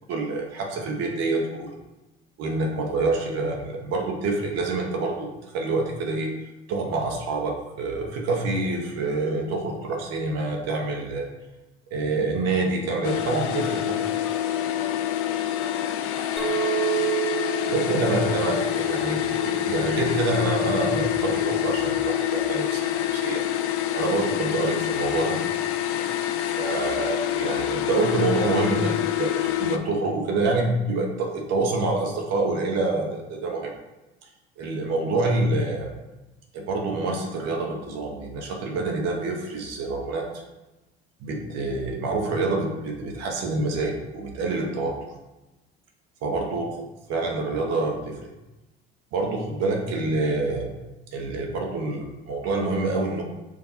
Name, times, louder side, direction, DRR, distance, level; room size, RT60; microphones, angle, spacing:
voice 1, 0.1-1.8 2.4-6.3 6.7-11.3 11.9-14.0 17.7-23.4 23.9-25.4 25.9-26.1 26.4-33.7 34.6-35.9 36.5-40.2 41.2-44.9 46.2-46.6 47.1-48.3 49.1-50.7 51.1-53.2, right 2 dB, 55° right, 0 dB, 0.9 m, -27 dB
sound 1, 13.0-29.8, left 12 dB, 50° left, 0.4 m, -26 dB
Chink clink, 16.4-20.9, right 13 dB, ahead, 0.9 m, -31 dB
4.8 x 2.5 x 4.2 m, 1.0 s
hypercardioid pair, 70°, 31 cm